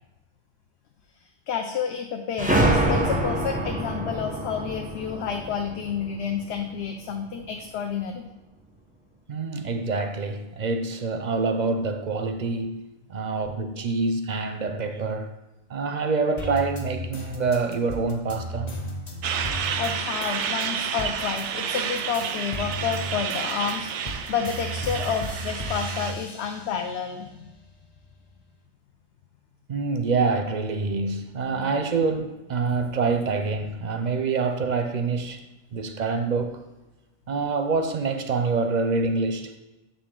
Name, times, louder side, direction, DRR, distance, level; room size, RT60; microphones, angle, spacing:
voice 1, 1.5-8.3 19.8-27.5, left 7 dB, 75° left, 0.8 m, -30 dB
sound 1, 2.4-6.8, right 1 dB, 10° right, 0.6 m, -26 dB
voice 2, 9.3-12.8 13.1-15.3 15.7-18.7 29.7-35.4 35.7-36.6 37.3-39.6, right 4 dB, 55° right, 0.6 m, -26 dB
sound 2, 16.4-21.5 21.7-26.9 27.4-28.4, equal, 40° left, 0.9 m, -35 dB
Truck, 19.2-26.1, right 7 dB, 90° right, 0.9 m, -30 dB
6.9 x 5.1 x 3.7 m
omnidirectional pair, 1.1 m